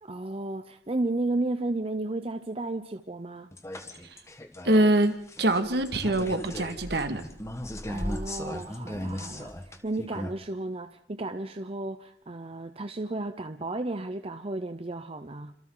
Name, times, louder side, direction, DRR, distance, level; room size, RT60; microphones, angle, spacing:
voice 1, 0.0-3.5 7.9-15.5, right 2 dB, 35° right, 0.8 m, -33 dB
sound 1, 3.5-10.3, left 1 dB, 15° left, 1.5 m, -37 dB
voice 2, 4.6-7.2, right 1 dB, 65° right, 2.0 m, -24 dB
28.0 x 26.0 x 4.0 m
head